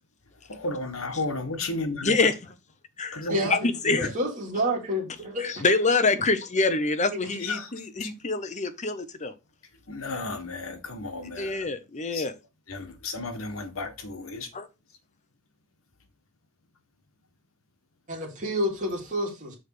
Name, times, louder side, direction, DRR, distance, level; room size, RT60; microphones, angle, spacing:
voice 1, 0.5-2.2 3.1-3.4 3.8-4.1 7.4-7.7 8.0-8.1 9.9-11.6 12.1-12.3 12.7-14.5, left 2 dB, 75° left, 1.6 m, -33 dB
voice 2, 2.0-2.4 3.0-4.1 5.4-9.3 11.4-12.3 14.5-14.7, left 3 dB, 35° left, 0.9 m, -26 dB
voice 3, 3.3-3.7 4.1-5.6 18.1-19.6, equal, 40° right, 3.0 m, -29 dB
6.4 x 4.9 x 4.8 m
head